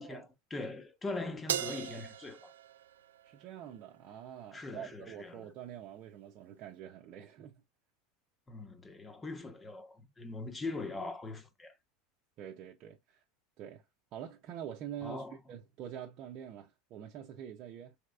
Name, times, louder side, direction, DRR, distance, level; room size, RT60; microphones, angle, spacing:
voice 1, 0.0-2.5 4.5-5.5 8.5-11.8 15.0-15.4, left 3 dB, 20° left, 1.1 m, -41 dB
Crash cymbal, 1.5-4.0, right 10 dB, 85° right, 0.3 m, -39 dB
voice 2, 3.2-7.6 12.4-13.2 13.6-13.8 14.1-18.0, right 10 dB, 50° right, 0.8 m, -46 dB
5.0 x 3.3 x 2.5 m
hypercardioid pair, 95°, 0 cm